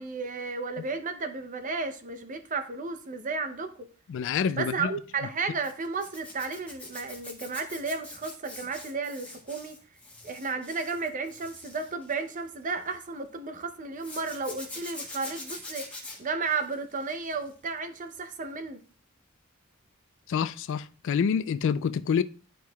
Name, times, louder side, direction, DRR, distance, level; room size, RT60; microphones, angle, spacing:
voice 1, 0.0-3.9 4.6-9.8 10.2-15.9 16.2-18.8, right 4 dB, 40° right, 0.7 m, -33 dB
voice 2, 4.1-4.9 20.3-22.2, left 7 dB, 60° left, 0.3 m, -27 dB
Zipper (clothing), 5.6-13.1 14.0-17.7 18.0-18.4 20.7-20.8 21.1-21.2, left 2 dB, 5° left, 1.5 m, -44 dB
10.5 x 4.6 x 2.3 m
head